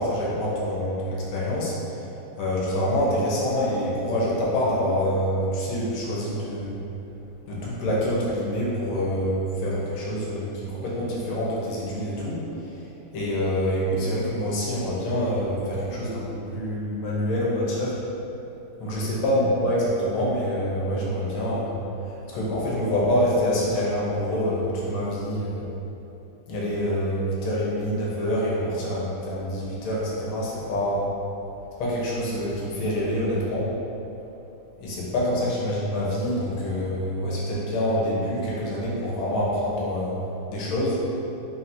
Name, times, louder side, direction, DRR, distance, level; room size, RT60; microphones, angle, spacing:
voice 1, 0.0-2.1 2.3-6.8 7.5-12.8 13.1-18.0 18.8-25.7 26.5-31.1 31.8-33.7 34.8-40.2 40.5-41.0, equal, 90° left, -6 dB, 1.7 m, -26 dB
4.0 x 2.5 x 4.3 m, 2.9 s
omnidirectional pair, 2.2 m